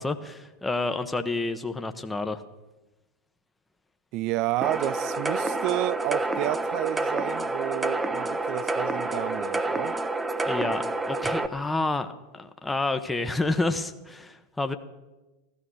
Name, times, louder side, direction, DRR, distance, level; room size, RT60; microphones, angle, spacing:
voice 1, 0.0-2.4 10.4-12.1 12.3-14.7, left 2 dB, 10° left, 1.1 m, -29 dB
voice 2, 4.1-10.0, right 17 dB, 50° right, 0.4 m, -30 dB
sound 1, 4.6-11.5, right 2 dB, 15° right, 1.0 m, -28 dB
15.5 x 13.0 x 6.3 m
hypercardioid pair, 90°, 0 cm